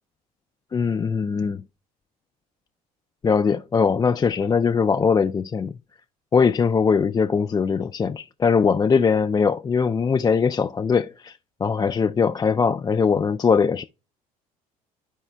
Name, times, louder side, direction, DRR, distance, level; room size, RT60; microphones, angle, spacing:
voice 1, 0.7-1.6 3.2-5.7 6.3-11.3 11.6-13.8, left 6 dB, 20° left, 0.3 m, -21 dB
13.0 x 4.4 x 2.2 m
hypercardioid pair, 65°, 19 cm